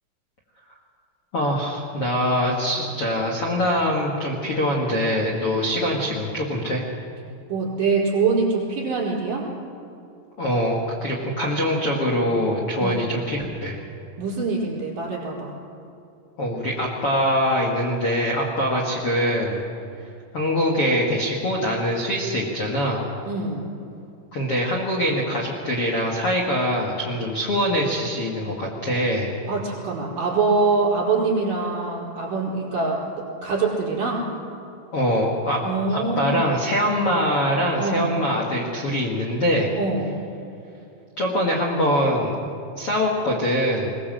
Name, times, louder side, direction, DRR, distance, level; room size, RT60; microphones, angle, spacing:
voice 1, 1.3-6.8 10.4-13.8 16.4-19.6 20.3-23.1 24.3-29.3 34.9-39.7 41.2-43.9, equal, 45° left, -2 dB, 1.9 m, -23 dB
voice 2, 7.5-9.5 12.8-13.1 14.2-15.5 23.3-23.7 29.5-34.3 35.6-36.5 37.8-38.1 39.7-40.2, right 4 dB, 45° right, -4 dB, 5.9 m, -24 dB
21.5 x 20.0 x 7.7 m, 2.7 s
omnidirectional pair, 5.7 m